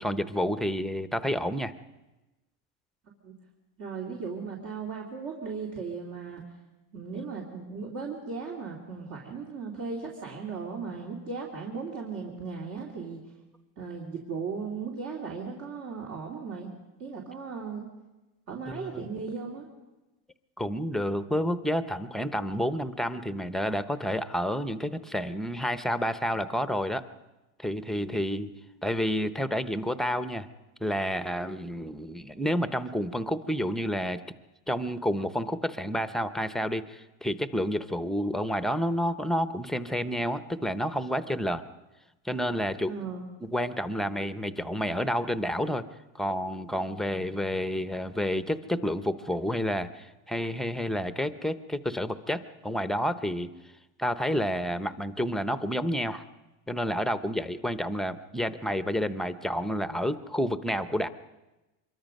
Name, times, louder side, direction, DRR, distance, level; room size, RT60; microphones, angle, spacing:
voice 1, 0.0-1.7 18.7-19.1 20.6-27.0 27.6-28.5 28.8-30.5 30.8-34.2 34.7-41.6 42.2-42.9 43.4-45.8 46.1-53.5 54.0-56.2 56.7-61.1, equal, ahead, 11 dB, 0.7 m, -29 dB
voice 2, 3.8-6.4 6.9-13.2 13.8-16.7 17.0-17.9 18.5-19.7 42.9-43.2, right 5 dB, 60° right, -2 dB, 3.2 m, -37 dB
25.5 x 22.5 x 5.3 m, 1.1 s
cardioid pair, 130°, 35 cm